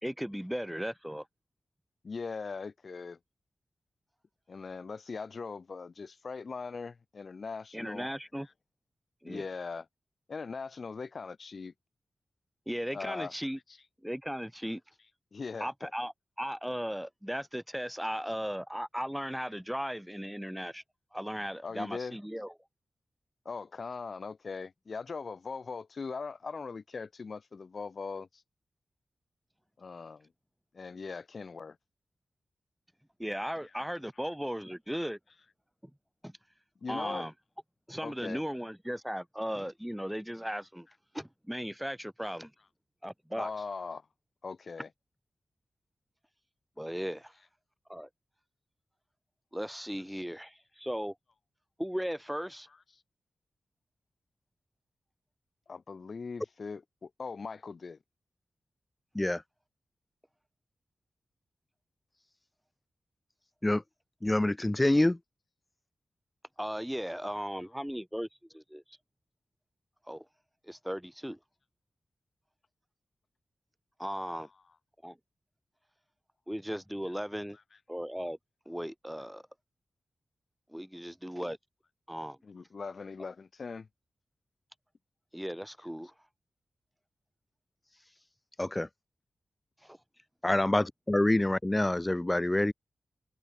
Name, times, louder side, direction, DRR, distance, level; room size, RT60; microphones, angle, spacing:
voice 1, 0.0-1.2 7.7-8.5 9.2-9.5 12.7-13.6 14.0-14.8 15.6-16.1 16.4-20.8 21.1-22.5 33.2-35.2 36.2-36.3 36.9-37.3 37.9-40.9 41.1-42.5 43.0-43.5 46.8-47.3 47.9-48.1 49.5-51.1 51.8-52.7 66.6-68.3 68.5-68.8 70.1-70.2 70.7-71.4 74.0-74.5 75.0-75.2 76.5-77.6 77.9-78.4 78.6-79.4 80.7-81.6 82.1-82.4 85.3-86.1 89.8-90.0, equal, ahead, 3.1 m, -36 dB
voice 2, 2.0-3.2 4.5-8.1 8.4-8.5 9.2-9.9 10.3-11.7 12.9-13.8 15.3-15.9 21.6-22.2 23.4-28.4 29.8-30.3 30.7-31.8 33.8-33.9 34.2-34.3 36.8-37.3 38.0-38.4 43.4-44.0 44.4-44.9 50.1-50.3 52.9-53.0 55.7-58.0 77.7-77.8 82.4-83.9, left 4 dB, 50° left, 4.8 m, -40 dB
voice 3, 64.2-65.2 88.6-88.9 90.4-92.7, left 1 dB, 15° left, 0.3 m, -26 dB
open air
wide cardioid pair, 150°, 0 cm